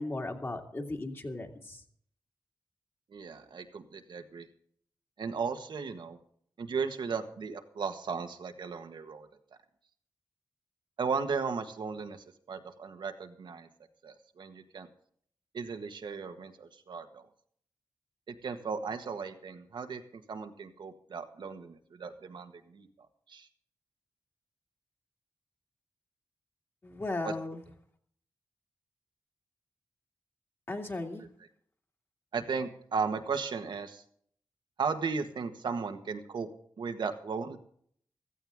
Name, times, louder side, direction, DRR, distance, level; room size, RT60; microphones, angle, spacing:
voice 1, 0.0-1.8 26.8-27.6 30.7-31.2, left 2 dB, 30° left, 2 dB, 2.2 m, -36 dB
voice 2, 3.1-4.5 5.2-6.2 6.6-9.3 11.0-13.7 14.0-14.9 15.5-17.3 18.3-22.9 23.3-23.5 27.2-27.3 31.2-31.3 32.3-34.0 34.8-36.5 36.8-37.6, right 5 dB, 75° right, 6 dB, 1.6 m, -36 dB
16.0 x 14.5 x 3.6 m, 0.62 s
wide cardioid pair, 125°, 8 cm